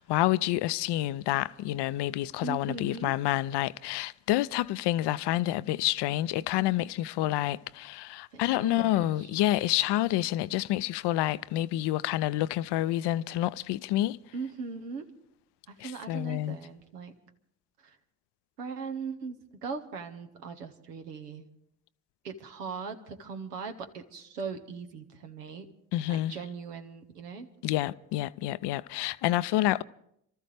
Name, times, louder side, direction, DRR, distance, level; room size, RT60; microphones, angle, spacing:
voice 1, 0.0-14.2 15.8-16.6 25.9-26.3 27.6-29.8, left 15 dB, 60° left, 0.6 m, -28 dB
voice 2, 2.4-3.2 8.3-9.3 14.3-15.1 15.7-17.1 17.8-18.0 18.6-21.4 22.2-25.7 26.1-27.5, right 5 dB, 90° right, 1.0 m, -39 dB
27.5 x 13.5 x 3.3 m
hypercardioid pair, 40°, 46 cm